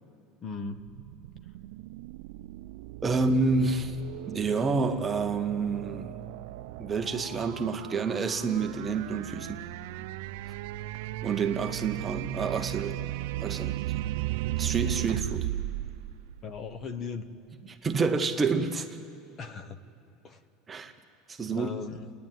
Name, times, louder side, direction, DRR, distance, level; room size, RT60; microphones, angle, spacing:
voice 1, 0.4-0.8 16.4-17.2 19.4-19.8 20.2-20.4 21.5-22.1, left 5 dB, 30° left, 11 dB, 0.9 m, -37 dB
sound 1, 0.8-17.0, right 16 dB, 80° right, 0.4 m, -36 dB
voice 2, 3.0-4.0 4.3-6.2 6.8-9.6 11.2-13.0 13.4-13.9 14.6-15.5 17.7-19.0 20.7-20.9 21.3-21.7, right 4 dB, 15° right, 6 dB, 0.8 m, -28 dB
30.0 x 10.0 x 9.2 m, 2.8 s
cardioid pair, 170°, 0 cm